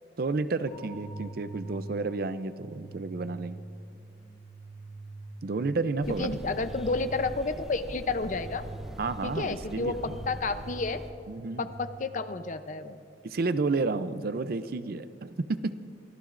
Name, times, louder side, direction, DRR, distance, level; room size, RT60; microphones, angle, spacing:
voice 1, 0.2-3.6 5.4-6.4 9.0-10.2 11.3-11.7 13.2-15.7, right 3 dB, 55° right, 13 dB, 0.5 m, -31 dB
sound 1, 0.7-12.6, right 2 dB, 70° left, 3.0 m, -45 dB
sound 2, 6.0-11.1, equal, 5° right, 0.7 m, -43 dB
voice 2, 6.1-8.6 9.2-10.0 10.3-11.0 11.6-13.0, left 3 dB, 45° left, 10 dB, 0.6 m, -31 dB
24.5 x 14.0 x 2.5 m, 2.5 s
head